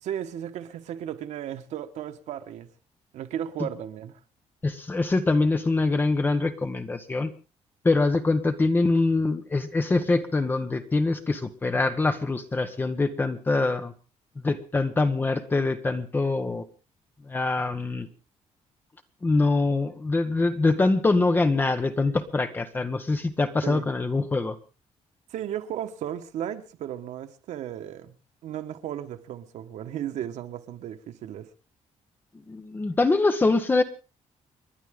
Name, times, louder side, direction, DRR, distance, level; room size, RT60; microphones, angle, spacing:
voice 1, 0.0-2.7 3.1-4.2 23.6-23.9 25.3-28.2 28.4-31.5, right 10 dB, 80° right, 1.5 m, -35 dB
voice 2, 4.6-7.3 7.8-13.9 14.4-16.6 17.3-18.1 19.2-24.6 32.5-33.8, left 3 dB, 15° left, 1.3 m, -24 dB
30.0 x 11.0 x 3.8 m
cardioid pair, 175°, 12 cm